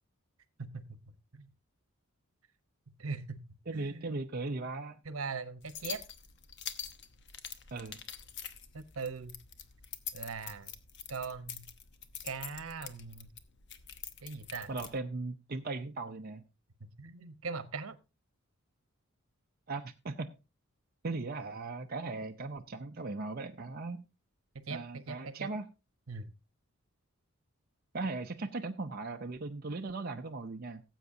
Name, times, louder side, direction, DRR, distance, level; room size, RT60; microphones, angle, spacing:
voice 1, 0.6-1.0 1.3-1.5 3.0-3.4 3.7-4.1 5.0-6.0 8.7-9.3 10.1-10.7 11.1-11.6 12.2-13.3 14.2-14.7 17.0-18.0 24.5-25.5 26.1-26.3, right 4 dB, 75° right, 12 dB, 1.0 m, -40 dB
voice 2, 3.7-5.0 7.7-8.0 14.7-16.4 19.7-20.3 21.0-24.0 24.7-25.7 27.9-30.8, right 3 dB, 45° right, 3 dB, 0.6 m, -38 dB
sound 1, 5.6-15.0, left 8 dB, 55° left, 1.0 m, -46 dB
18.0 x 8.0 x 2.7 m, 0.28 s
head